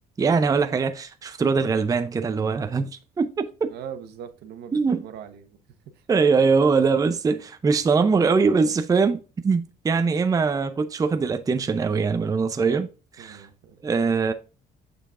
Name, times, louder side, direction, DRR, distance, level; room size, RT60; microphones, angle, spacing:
voice 1, 0.2-2.8 3.2-3.7 4.7-5.0 6.1-12.9 13.2-13.4 13.8-14.3, right 5 dB, 20° right, 0.5 m, -22 dB
voice 2, 3.6-5.6 5.9-6.1 13.2-13.8, right 8 dB, 75° right, 1.0 m, -41 dB
6.7 x 5.7 x 2.4 m
cardioid pair, 110°, 17 cm